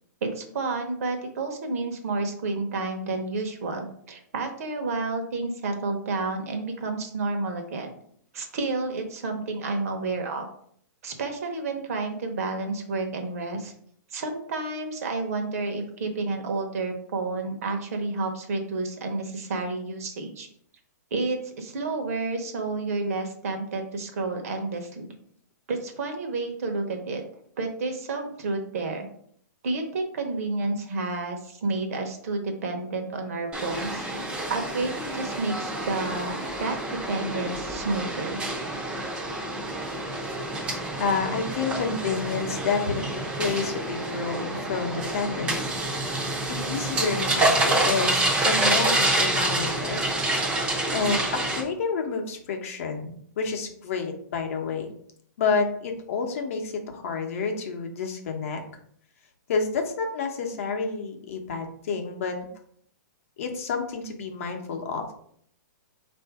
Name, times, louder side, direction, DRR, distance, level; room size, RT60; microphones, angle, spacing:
voice 1, 0.2-7.9 8.3-10.4 11.0-13.7 14.1-20.5 21.1-25.1 25.7-27.2 27.6-29.1 29.6-34.1 34.5-36.8 37.1-38.4, right 3 dB, 50° right, 5 dB, 0.9 m, -30 dB
sound 1, 33.5-51.6, right 1 dB, 10° right, 0.6 m, -27 dB
voice 2, 41.0-46.1 46.5-50.0 50.9-54.9 55.4-58.6 59.5-62.5 63.4-65.1, left 5 dB, 45° left, 3 dB, 0.8 m, -29 dB
4.3 x 2.6 x 4.6 m, 0.64 s
hypercardioid pair, 170°, 10 cm